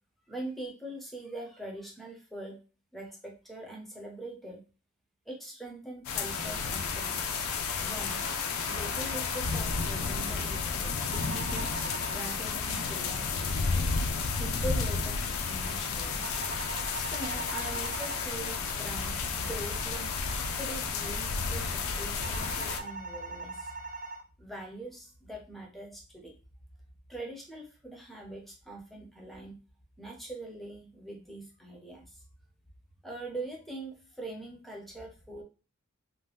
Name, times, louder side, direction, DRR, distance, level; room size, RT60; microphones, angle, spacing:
voice 1, 0.3-2.6 2.9-4.6 5.3-8.2 8.7-11.7 12.1-13.7 14.4-16.3 16.9-23.8 24.4-26.3 27.1-29.6 30.0-32.2 33.0-35.4, right 1 dB, ahead, 0 dB, 0.7 m, -42 dB
sound 1, 6.0-22.8, left 5 dB, 75° left, 0.4 m, -32 dB
sound 2, 11.1-12.2 16.2-18.2 22.2-24.2, right 3 dB, 40° right, 0.4 m, -41 dB
2.7 x 2.1 x 3.3 m, 0.34 s
head